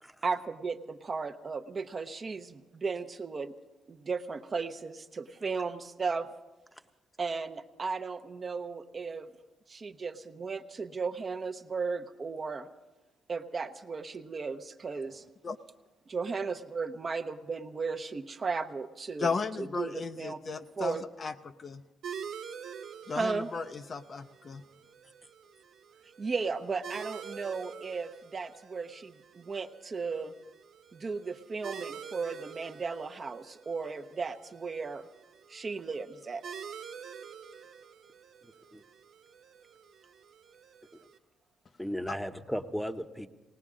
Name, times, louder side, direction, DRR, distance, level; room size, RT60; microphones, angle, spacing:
voice 1, 0.2-3.5 3.9-6.3 7.2-9.3 9.7-12.7 13.3-15.2 16.1-19.3 19.6-20.4 20.8-21.0 23.1-23.5 26.2-30.4 30.9-35.1 35.5-36.4, right 4 dB, 35° right, 8 dB, 0.7 m, -35 dB
voice 2, 19.2-21.8 23.1-24.6 42.1-42.2, left 4 dB, 40° left, 9 dB, 0.5 m, -35 dB
sound 1, 22.0-41.2, right 7 dB, 75° right, 1.2 m, -47 dB
voice 3, 38.4-38.8 41.8-43.3, equal, ahead, 8 dB, 0.8 m, -36 dB
19.0 x 18.5 x 3.7 m, 1.1 s
cardioid pair, 90°, 0 cm